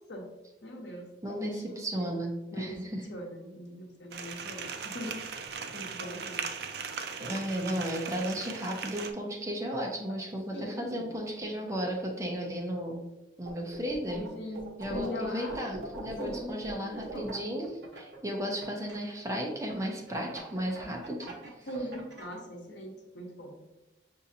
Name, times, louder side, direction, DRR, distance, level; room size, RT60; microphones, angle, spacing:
voice 1, 0.6-2.8 3.1-6.5 10.1-10.2 10.5-11.1 14.2-15.7 16.2-17.3 21.6-23.5, left 1 dB, 75° left, 1 dB, 0.8 m, -41 dB
voice 2, 1.2-3.0 7.2-13.0 13.4-14.2 14.8-21.3 21.6-21.7, equal, 15° right, -1 dB, 0.6 m, -34 dB
sound 1, 4.1-9.1, right 6 dB, 60° right, 0.4 m, -38 dB
sound 2, 13.5-14.3 14.5-19.0 19.7-22.4, right 2 dB, 75° right, 1.0 m, -42 dB
6.1 x 2.7 x 2.7 m, 1.0 s
head